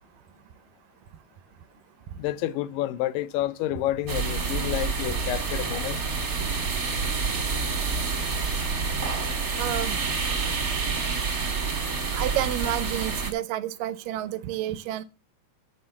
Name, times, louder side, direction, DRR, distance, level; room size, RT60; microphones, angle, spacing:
voice 1, 2.2-6.0, left 14 dB, 90° left, 2.4 m, -29 dB
sound 1, 4.1-13.3, right 4 dB, 35° right, 1.7 m, -28 dB
voice 2, 9.6-10.0 10.9-11.2 12.1-15.0, right 13 dB, 85° right, 2.4 m, -30 dB
12.0 x 6.0 x 6.9 m
omnidirectional pair, 3.8 m